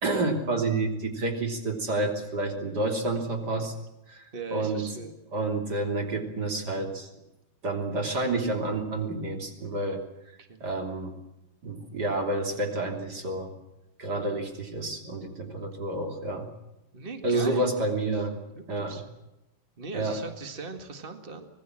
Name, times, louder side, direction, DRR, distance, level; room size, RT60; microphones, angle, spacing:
voice 1, 0.0-3.7 4.1-4.2 4.5-4.9 5.3-7.1 7.6-10.0 10.6-11.1 11.6-13.5 14.0-16.5 17.2-18.3 18.7-19.0 19.9-20.2, right 2 dB, 25° right, 4 dB, 3.3 m, -29 dB
voice 2, 4.3-5.1 10.4-10.7 16.9-17.9 18.1-19.0 19.8-21.5, right 4 dB, 70° right, 6 dB, 0.5 m, -40 dB
25.0 x 19.5 x 7.6 m, 0.92 s
omnidirectional pair, 4.5 m